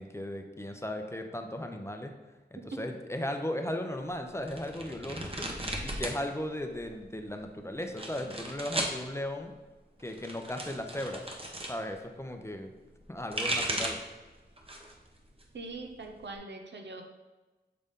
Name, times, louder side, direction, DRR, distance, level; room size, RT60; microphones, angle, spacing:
voice 1, 0.0-2.2 2.5-5.5 5.8-9.5 10.0-11.3 11.7-12.7 13.1-14.0, left 1 dB, 15° left, 4 dB, 0.7 m, -36 dB
sound 1, 4.4-6.2 6.5-7.2 7.8-9.0 10.0-11.8 13.0-14.1 14.6-15.0 15.4-16.4, right 1 dB, 30° right, 1.0 m, -36 dB
voice 2, 15.5-17.0, right 3 dB, 80° right, 4 dB, 0.7 m, -42 dB
6.7 x 3.9 x 3.7 m, 1.2 s
wide cardioid pair, 60°, 18 cm